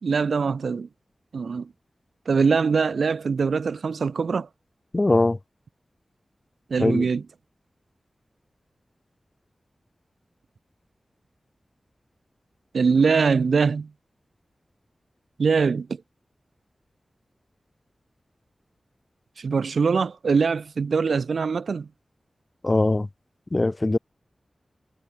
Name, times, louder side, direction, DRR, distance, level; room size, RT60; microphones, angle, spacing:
voice 1, 0.0-0.9 1.3-1.7 2.3-4.5 6.7-7.2 12.7-13.9 15.4-16.0 19.4-21.9, right 5 dB, 85° right, 0.9 m, -22 dB
voice 2, 4.9-5.4 6.8-7.1 22.6-23.1 23.5-24.0, left 2 dB, 30° left, 1.4 m, -21 dB
wide cardioid pair, 100°, 0 cm